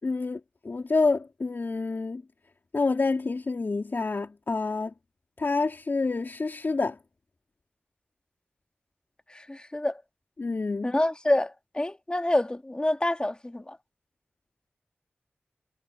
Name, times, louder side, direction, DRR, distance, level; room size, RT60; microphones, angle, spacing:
voice 1, 0.0-2.2 2.7-4.9 5.4-7.0 10.4-10.9, left 3 dB, 60° left, 3.4 m, -28 dB
voice 2, 9.3-10.0 10.8-13.8, left 1 dB, 20° left, 2.0 m, -27 dB
cardioid pair, 50°, 4 cm